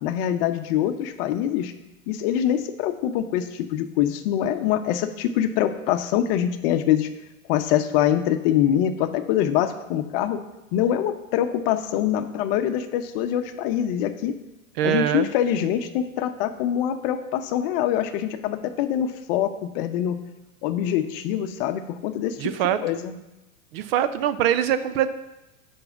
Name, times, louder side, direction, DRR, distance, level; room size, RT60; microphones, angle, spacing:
voice 1, 0.0-1.7 2.1-7.1 7.5-10.4 10.7-14.3 14.8-20.2 20.6-22.5 22.8-23.2, left 10 dB, 40° left, 9 dB, 0.8 m, -24 dB
voice 2, 14.8-15.3 22.4-22.8 23.7-25.1, right 10 dB, 45° right, 13 dB, 0.6 m, -23 dB
6.9 x 5.6 x 6.8 m, 0.98 s
hypercardioid pair, 105°, 43 cm